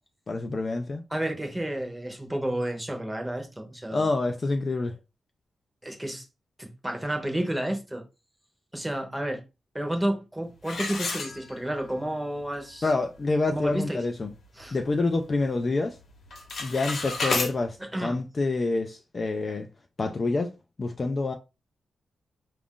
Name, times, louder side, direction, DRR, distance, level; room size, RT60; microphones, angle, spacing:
voice 1, 0.3-1.0 3.9-5.0 12.8-14.3 14.7-16.0 16.6-19.7 20.0-20.5 20.8-21.3, left 3 dB, 30° left, 0.3 m, -27 dB
voice 2, 1.1-4.1 5.8-6.2 6.6-8.0 8.7-9.4 9.7-12.9 13.5-14.0 14.6-14.8 17.9-18.2, right 1 dB, 5° right, 0.8 m, -31 dB
sound 1, 10.6-11.9 12.4-12.5 13.0-13.1 13.5-13.8 14.3-15.4 15.6-16.0 16.2-17.5, left 3 dB, 55° left, 0.9 m, -31 dB
4.9 x 2.4 x 3.6 m
wide cardioid pair, 170°, 0 cm